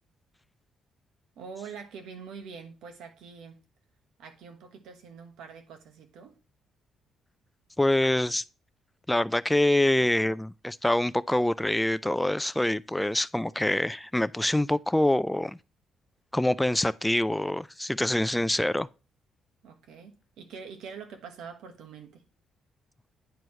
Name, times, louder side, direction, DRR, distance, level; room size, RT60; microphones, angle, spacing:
voice 1, 1.4-3.6 4.2-6.4 19.6-22.2, right 6 dB, 85° right, 1.3 m, -44 dB
voice 2, 7.8-8.4 9.1-15.6 16.3-18.9, left 1 dB, 5° left, 0.3 m, -25 dB
9.2 x 4.5 x 3.2 m
cardioid pair, 90°, 0 cm